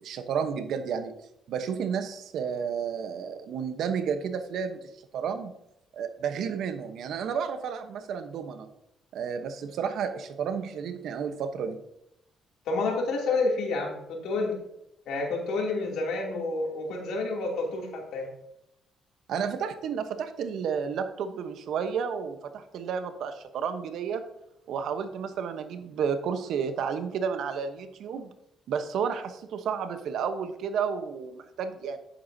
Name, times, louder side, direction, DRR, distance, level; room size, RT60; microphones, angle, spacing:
voice 1, 0.0-1.1 1.5-5.5 5.9-8.7 9.1-11.8 19.3-24.2 24.7-28.3 28.7-32.0, right 7 dB, 75° right, 9 dB, 1.0 m, -31 dB
voice 2, 12.6-14.6 15.1-18.3, left 3 dB, 80° left, -1 dB, 2.8 m, -29 dB
10.0 x 8.4 x 2.8 m, 0.80 s
cardioid pair, 90°, 0 cm